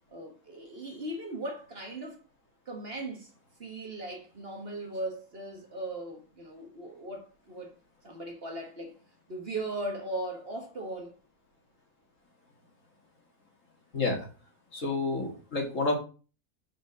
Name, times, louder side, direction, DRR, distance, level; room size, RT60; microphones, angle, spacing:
voice 1, 0.1-2.2 2.6-3.3 3.6-7.7 8.0-8.9 9.3-11.2, right 2 dB, 40° right, 1.6 m, -38 dB
voice 2, 13.9-14.3 14.7-16.0, left 3 dB, 60° left, 2.5 m, -29 dB
6.3 x 5.2 x 6.1 m
omnidirectional pair, 1.6 m